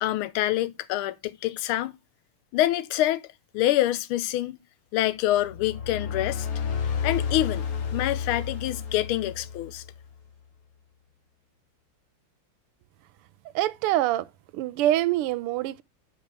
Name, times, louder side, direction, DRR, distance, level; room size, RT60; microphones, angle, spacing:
voice 1, 0.0-1.9 2.5-3.3 3.5-4.6 4.9-6.5 7.0-7.7 7.9-9.8, left 14 dB, 80° left, 1.5 m, -26 dB
sound 1, 5.4-10.0, left 7 dB, 50° left, 1.4 m, -31 dB
voice 2, 13.5-14.3 14.5-15.8, right 14 dB, 90° right, 1.5 m, -25 dB
8.8 x 5.0 x 3.3 m
omnidirectional pair, 2.4 m